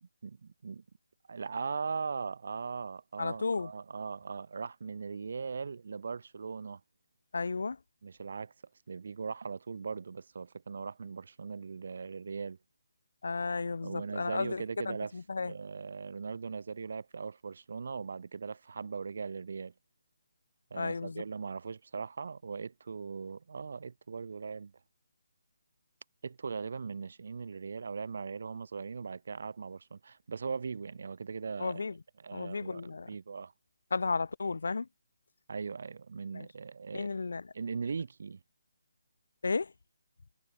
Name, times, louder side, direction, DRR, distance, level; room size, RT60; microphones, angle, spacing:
voice 1, 0.0-0.8 1.3-6.8 8.0-8.5 8.9-12.6 13.8-15.1 15.4-19.7 20.7-24.7 26.2-31.8 32.2-33.5 35.5-37.1 37.5-38.4, right 5 dB, 55° right, 1.3 m, -39 dB
voice 2, 3.2-3.7 7.3-7.8 13.2-15.5 20.7-21.2 31.6-32.0 32.3-33.1 33.9-34.9 36.3-36.5 36.9-37.5 39.4-39.7, left 4 dB, 75° left, 0.4 m, -33 dB
hypercardioid pair, 175°, 0 cm